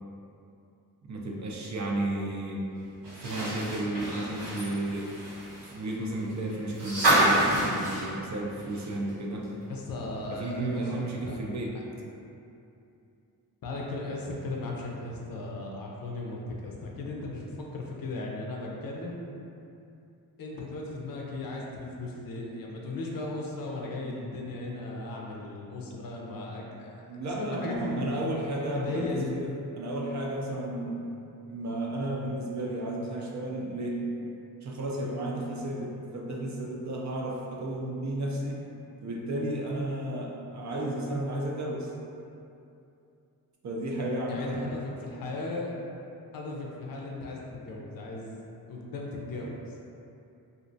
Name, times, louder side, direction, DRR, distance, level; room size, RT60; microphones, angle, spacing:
voice 1, 1.0-2.6 3.2-5.1 5.6-9.5 10.3-11.7 27.1-29.5 29.8-31.0 31.5-34.1 34.6-38.6 39.0-41.9 43.6-44.7, right 1 dB, 45° right, -2 dB, 0.4 m, -33 dB
sound 1, 3.0-9.1 9.4-9.5 10.9-11.0, right 1 dB, 90° right, 1.2 m, -28 dB
voice 2, 9.7-11.4 13.6-19.2 20.4-28.2 28.7-29.3 44.3-45.7 46.3-48.3 48.7-49.8, left 2 dB, 55° left, -2 dB, 0.5 m, -36 dB
2.5 x 2.1 x 2.6 m, 2.6 s
cardioid pair, 60°, 41 cm